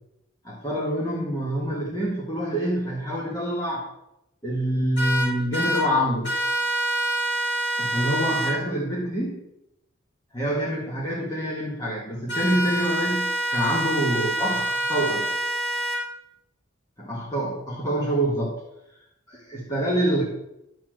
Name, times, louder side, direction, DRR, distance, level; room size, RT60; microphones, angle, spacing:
voice 1, 0.4-3.9 4.4-6.3 7.8-9.4 10.3-13.2 13.5-15.2 17.0-18.5 19.3-20.2, equal, 20° left, -4 dB, 1.9 m, -26 dB
sound 1, 5.0-5.8 6.2-8.5 12.3-16.0, right 1 dB, 55° left, 4.0 m, -26 dB
13.0 x 4.5 x 7.8 m, 0.85 s
head